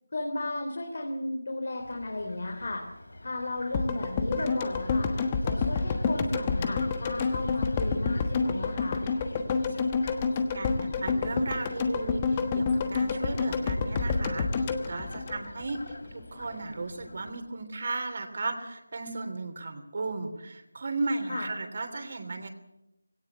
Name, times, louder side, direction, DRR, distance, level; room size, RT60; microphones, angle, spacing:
voice 1, 0.1-2.8 3.2-5.1 5.4-9.0 21.3-21.5, left 2 dB, 50° left, 2 dB, 3.7 m, -34 dB
Fowl, 1.8-17.3, left 1 dB, 80° left, 3.8 m, -47 dB
sound 1, 3.7-15.9 16.2-16.3, left 4 dB, 15° left, 1.3 m, -28 dB
voice 2, 10.5-15.8 16.1-22.5, right 3 dB, 40° right, 6 dB, 3.2 m, -35 dB
20.0 x 17.5 x 8.1 m, 0.88 s
figure-of-eight pair, 175°, 0 cm